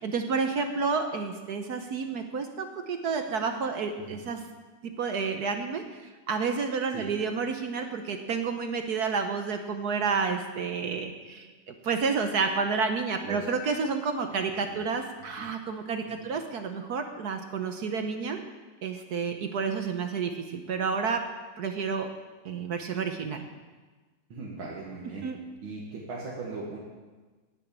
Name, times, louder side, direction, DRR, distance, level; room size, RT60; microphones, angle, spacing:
voice 1, 0.0-4.4 4.8-5.8 6.3-11.5 11.8-18.4 18.8-21.2 21.6-22.1 22.4-23.4 25.2-25.4, right 5 dB, 60° right, 6 dB, 1.3 m, -30 dB
voice 2, 24.3-25.3 25.6-26.8, right 3 dB, 85° right, -5 dB, 2.7 m, -39 dB
10.0 x 9.9 x 8.7 m, 1.3 s
omnidirectional pair, 2.2 m